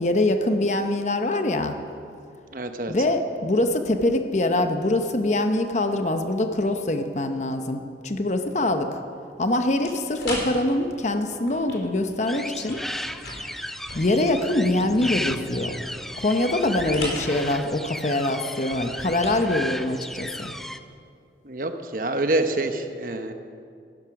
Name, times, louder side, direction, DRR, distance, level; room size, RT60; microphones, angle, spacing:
voice 1, 0.0-1.8 2.9-9.0 9.4-12.8 13.9-15.8 16.2-20.5, left 1 dB, 40° left, 7 dB, 0.8 m, -24 dB
voice 2, 2.5-2.9 21.4-23.3, right 2 dB, 50° right, 7 dB, 0.9 m, -26 dB
sound 1, 9.8-20.9, left 1 dB, 75° left, 4.1 m, -40 dB
sound 2, 12.3-20.8, equal, ahead, 0.3 m, -34 dB
15.0 x 11.0 x 5.9 m, 2.4 s
head